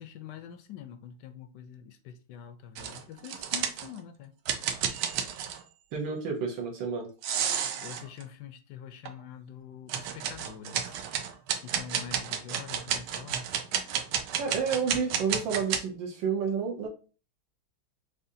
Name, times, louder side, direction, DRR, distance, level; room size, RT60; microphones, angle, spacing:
voice 1, 0.0-4.3 7.8-11.0 11.6-13.5, left 8 dB, 75° left, 1.0 m, -45 dB
sound 1, 2.8-4.0 4.5-5.6 7.2-8.2 9.1-9.2 9.9-15.8, right 8 dB, 85° right, 1.5 m, -31 dB
voice 2, 5.9-7.1 14.4-16.9, right 6 dB, 70° right, 1.6 m, -30 dB
6.2 x 2.5 x 2.7 m
omnidirectional pair, 2.2 m